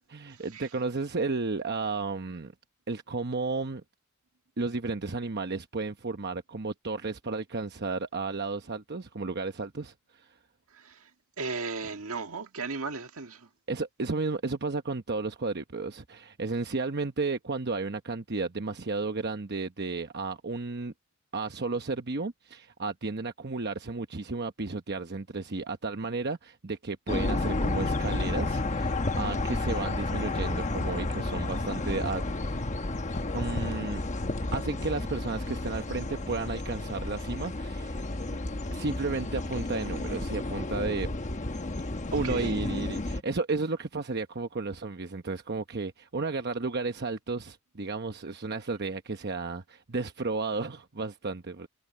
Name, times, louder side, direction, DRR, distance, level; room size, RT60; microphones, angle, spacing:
voice 1, 0.1-2.5 2.9-3.8 4.6-10.3 13.7-20.9 21.3-32.2 33.3-34.0 34.5-38.0 38.7-41.1 42.1-51.7, right 3 dB, 50° right, 1.0 m, -33 dB
voice 2, 11.4-13.5 42.1-42.6, right 4 dB, 70° right, 1.9 m, -35 dB
sound 1, 27.1-43.2, left 2 dB, 35° left, 1.0 m, -31 dB
head